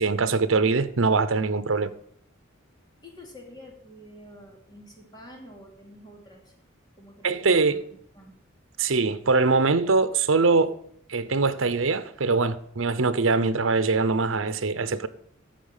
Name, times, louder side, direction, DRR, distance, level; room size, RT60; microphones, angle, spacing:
voice 1, 0.0-1.9 7.2-7.8 8.8-10.8 11.1-15.1, right 4 dB, 80° right, 0.8 m, -23 dB
voice 2, 3.0-6.5 6.9-7.8 8.1-8.4, left 1 dB, 20° left, 3.0 m, -48 dB
11.5 x 7.3 x 7.3 m
head